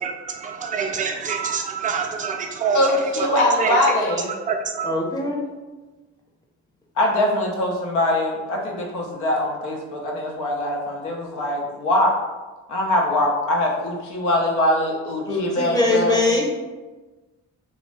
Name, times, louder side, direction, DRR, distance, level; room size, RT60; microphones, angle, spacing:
voice 1, 0.0-3.3 3.6-3.8 4.5-4.9, right 6 dB, 25° right, 3 dB, 0.4 m, -26 dB
voice 2, 2.7-4.3 7.0-12.1 12.7-16.3, left 1 dB, 85° left, 0 dB, 0.6 m, -22 dB
voice 3, 4.8-5.4 15.3-16.5, left 2 dB, 15° left, -2 dB, 0.6 m, -22 dB
2.5 x 2.0 x 3.1 m, 1.2 s
cardioid pair, 90°, 30 cm